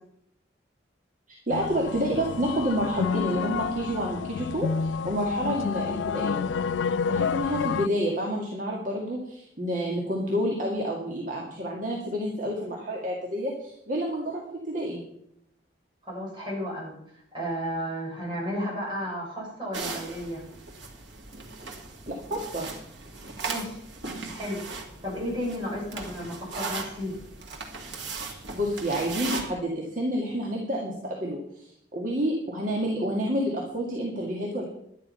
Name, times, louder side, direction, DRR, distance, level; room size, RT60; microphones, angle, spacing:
sound 1, 1.5-7.9, left 6 dB, 90° left, 0.4 m, -29 dB
voice 1, 1.5-6.4 7.1-15.0 22.1-22.7 28.2-34.7, equal, 45° right, -2 dB, 2.1 m, -29 dB
voice 2, 16.0-20.4 23.4-23.8 24.3-24.6 25.0-27.2, equal, 25° right, -4 dB, 6.8 m, -33 dB
sound 2, 19.7-29.4, right 3 dB, 90° right, 2.4 m, -38 dB
11.5 x 10.5 x 5.7 m, 0.73 s
head